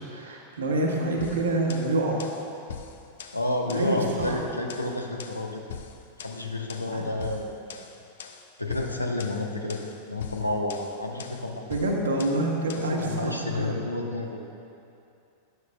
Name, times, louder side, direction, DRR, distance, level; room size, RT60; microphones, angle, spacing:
voice 1, 0.0-2.2 3.7-4.4 6.9-7.0 11.7-13.7, right 2 dB, 70° right, -1 dB, 1.4 m, -27 dB
sound 1, 1.2-13.0, left 6 dB, 60° left, 0.5 m, -43 dB
voice 2, 3.3-5.6 6.2-7.9 8.6-11.6 12.8-14.4, left 2 dB, 85° left, 2 dB, 0.8 m, -30 dB
12.5 x 10.5 x 2.3 m, 2.6 s
figure-of-eight pair, 90°, 0 cm